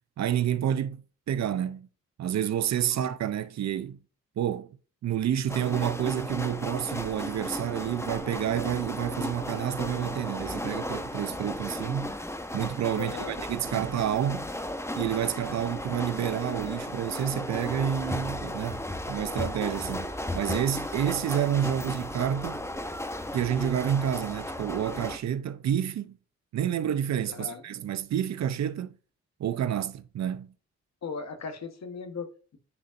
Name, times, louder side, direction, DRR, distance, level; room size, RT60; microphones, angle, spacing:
voice 1, 0.2-1.9 2.2-4.0 4.4-4.7 5.0-12.1 12.5-14.5 14.9-22.7 23.3-26.2 26.5-29.0 29.4-30.5, right 10 dB, 60° right, 0.6 m, -29 dB
sound 1, 5.5-25.2, left 1 dB, 10° left, 1.0 m, -35 dB
voice 2, 12.9-13.3 27.3-27.6 31.0-32.6, left 5 dB, 60° left, 1.3 m, -38 dB
9.6 x 4.0 x 2.6 m
supercardioid pair, 50°, 30 cm